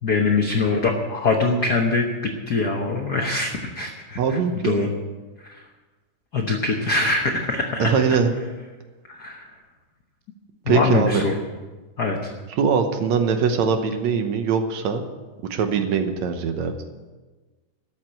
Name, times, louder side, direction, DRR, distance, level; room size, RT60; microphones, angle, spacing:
voice 1, 0.0-4.9 5.4-5.6 6.3-8.0 9.1-9.5 10.6-11.3 12.0-12.2, left 3 dB, 85° left, 2 dB, 0.8 m, -23 dB
voice 2, 4.2-4.8 7.8-8.3 10.7-11.2 12.6-15.0 15.5-16.7, right 6 dB, 65° right, 7 dB, 2.1 m, -22 dB
13.0 x 7.6 x 9.1 m, 1.3 s
omnidirectional pair, 3.7 m